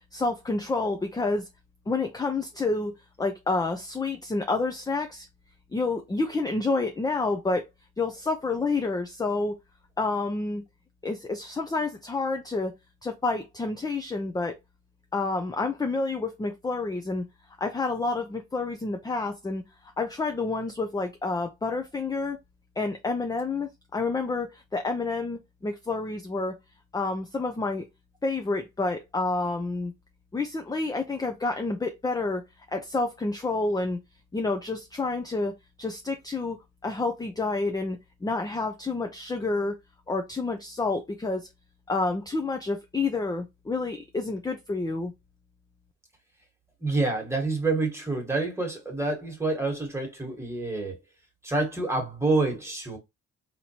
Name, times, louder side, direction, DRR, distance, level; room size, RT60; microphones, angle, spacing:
voice 1, 0.1-1.5 1.9-2.9 3.2-5.3 5.7-7.7 8.0-9.5 10.0-10.6 11.0-12.7 13.0-14.5 15.1-17.2 17.6-19.6 20.0-22.4 22.8-26.5 26.9-27.8 28.2-29.9 30.3-32.4 32.7-34.0 34.3-35.5 35.8-36.6 36.8-39.7 40.1-41.5 41.9-45.1, left 3 dB, 15° left, 0.5 m, -29 dB
voice 2, 46.8-51.0 51.4-53.0, right 3 dB, 10° right, 1.5 m, -27 dB
3.9 x 2.9 x 2.8 m
cardioid pair, 90°, 30 cm